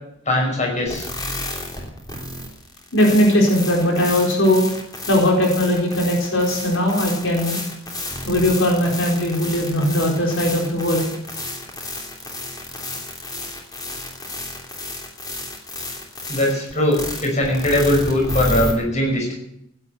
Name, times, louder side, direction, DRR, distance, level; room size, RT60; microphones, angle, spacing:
voice 1, 0.3-1.1 16.3-19.3, left 1 dB, 40° left, 1 dB, 5.7 m, -20 dB
sound 1, 0.9-18.7, left 2 dB, 20° left, 3.2 m, -31 dB
voice 2, 2.9-4.6 5.1-7.6 8.3-11.1, left 1 dB, 90° left, 0 dB, 4.2 m, -19 dB
16.5 x 9.7 x 8.1 m, 0.78 s
head